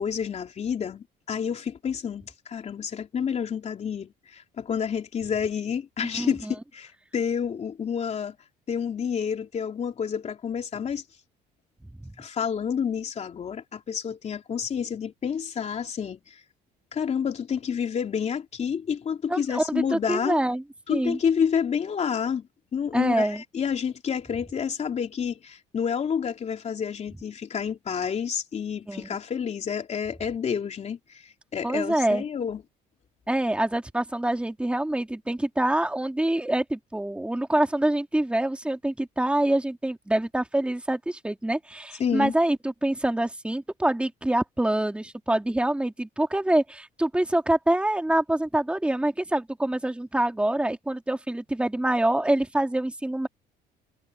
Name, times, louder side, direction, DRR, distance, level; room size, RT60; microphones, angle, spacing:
voice 1, 0.0-8.3 8.7-11.0 12.2-16.2 16.9-20.4 20.9-22.5 22.7-31.0 31.5-32.6 42.0-42.3, left 7 dB, 40° left, 3.2 m, -29 dB
voice 2, 6.1-6.5 12.0-12.1 19.3-20.6 20.9-21.2 22.9-23.4 28.9-29.1 31.6-32.2 33.3-53.3, right 1 dB, 5° right, 2.6 m, -25 dB
cardioid pair, 110°, 17 cm